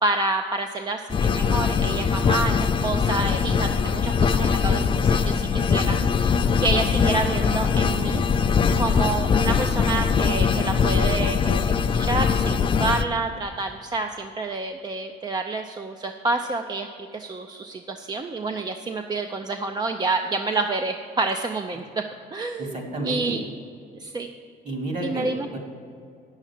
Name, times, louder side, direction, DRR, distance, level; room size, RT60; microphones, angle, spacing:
voice 1, 0.0-4.8 5.1-8.5 8.8-22.0 22.3-22.8 23.0-23.4 24.0-24.3 25.0-25.5, right 3 dB, 25° right, 5 dB, 0.5 m, -28 dB
sound 1, 1.1-13.0, left 6 dB, 30° left, 0.5 m, -22 dB
voice 2, 22.6-23.4 24.6-25.6, right 1 dB, 45° right, 2 dB, 2.5 m, -31 dB
9.0 x 7.3 x 7.3 m, 2.3 s
cardioid pair, 110°, 17 cm